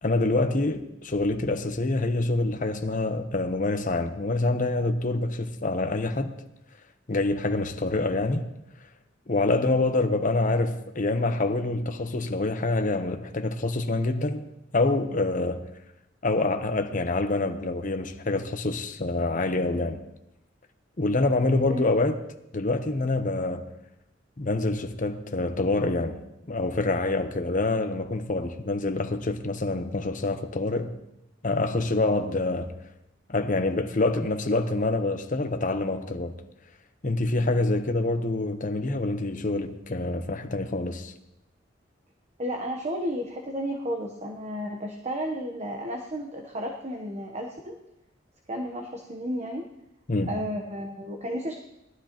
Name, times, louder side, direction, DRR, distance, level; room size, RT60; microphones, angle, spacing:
voice 1, 0.0-6.3 7.1-8.5 9.3-14.4 14.7-15.6 16.2-20.0 21.0-22.2 22.5-23.7 24.4-26.2 26.5-30.9 31.4-32.7 33.3-36.3 37.0-41.1 50.1-50.4, left 2 dB, 45° left, 0.9 m, -26 dB
voice 2, 21.6-22.0 42.4-47.8 48.5-49.7 50.3-51.6, equal, 35° right, 1.0 m, -33 dB
20.0 x 12.5 x 3.0 m
head